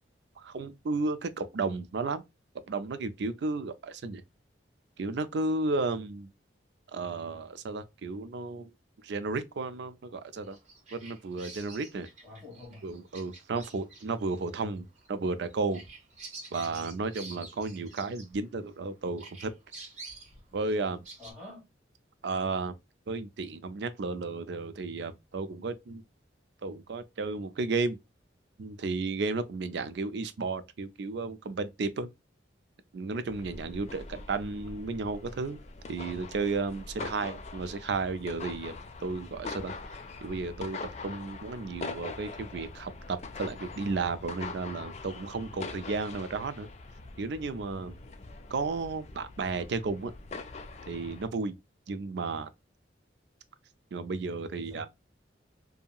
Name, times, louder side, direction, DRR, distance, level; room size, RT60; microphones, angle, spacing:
voice 1, 0.4-2.2 2.7-4.2 5.0-6.3 6.9-8.7 9.0-10.6 10.9-12.1 12.8-15.8 16.5-19.5 20.5-21.1 22.2-22.8 23.1-26.0 26.6-28.0 28.6-32.1 32.9-35.6 35.9-39.7 40.2-46.7 47.2-48.0 48.5-50.1 50.9-51.5 51.9-52.5 53.9-54.9, right 3 dB, 60° right, 0.4 m, -33 dB
Bird vocalization bird call bird song, 10.4-18.8 19.2-21.3, right 3 dB, 40° right, 1.0 m, -48 dB
voice 2, 12.2-12.9 21.2-21.7 54.5-54.9, left 2 dB, 5° right, 1.4 m, -47 dB
sound 1, 33.3-51.3, left 3 dB, 35° left, 0.3 m, -43 dB
2.7 x 2.7 x 2.3 m
head